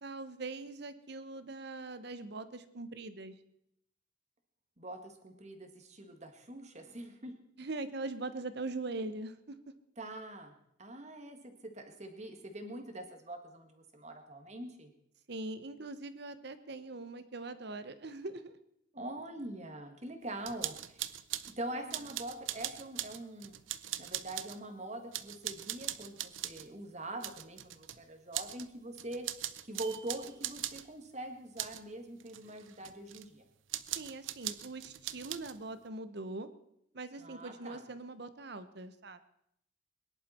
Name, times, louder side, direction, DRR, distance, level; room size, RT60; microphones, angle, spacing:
voice 1, 0.0-3.3 7.6-9.6 15.3-18.6 21.7-22.0 33.9-36.5 36.9-39.2, right 2 dB, 55° right, 12 dB, 0.9 m, -42 dB
voice 2, 4.8-7.3 10.0-14.9 18.9-21.1 21.6-23.5 24.0-29.3 29.6-33.4 37.2-37.8, right 1 dB, 35° right, 6 dB, 1.7 m, -44 dB
sound 1, 20.5-21.5 21.9-24.6 25.1-26.7 27.2-28.0 28.3-28.7 28.9-30.9 31.6-31.8 32.2-33.2 33.7-35.6, right 13 dB, 80° right, 0.7 m, -40 dB
21.5 x 11.0 x 4.3 m, 0.75 s
head